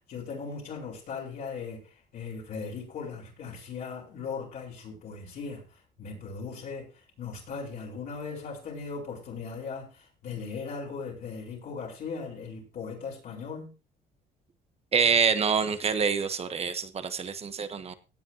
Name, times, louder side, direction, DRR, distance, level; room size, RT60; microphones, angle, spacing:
voice 1, 0.1-5.6 6.0-6.9 7.2-13.7, left 5 dB, 60° left, -4 dB, 5.0 m, -38 dB
voice 2, 14.9-17.9, right 6 dB, 35° right, 10 dB, 1.3 m, -26 dB
17.0 x 8.6 x 3.0 m, 0.32 s
cardioid pair, 110°, 17 cm